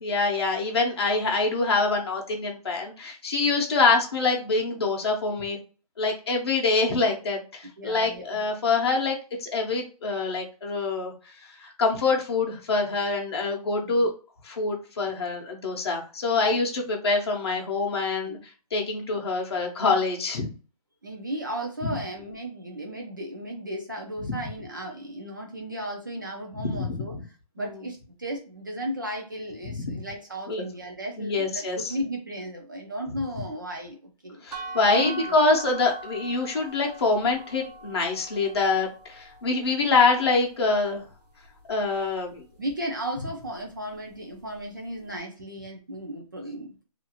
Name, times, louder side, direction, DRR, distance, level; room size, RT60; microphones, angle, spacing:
voice 1, 0.0-5.6 6.0-11.1 11.6-14.1 14.4-18.4 18.7-20.5 24.2-24.4 26.7-27.0 27.6-27.7 29.8-29.9 30.5-30.6 31.2-31.9 34.4-41.0 41.7-42.4, left 3 dB, 40° left, 0 dB, 0.7 m, -25 dB
voice 2, 7.8-8.4 13.8-14.1 18.2-18.4 21.0-27.2 27.6-34.4 34.9-35.4 42.6-46.8, right 1 dB, 30° right, 1 dB, 0.4 m, -35 dB
sound 1, 34.5-40.3, right 2 dB, 80° right, 0.9 m, -41 dB
2.5 x 2.3 x 2.8 m, 0.36 s
hypercardioid pair, 175°, 20 cm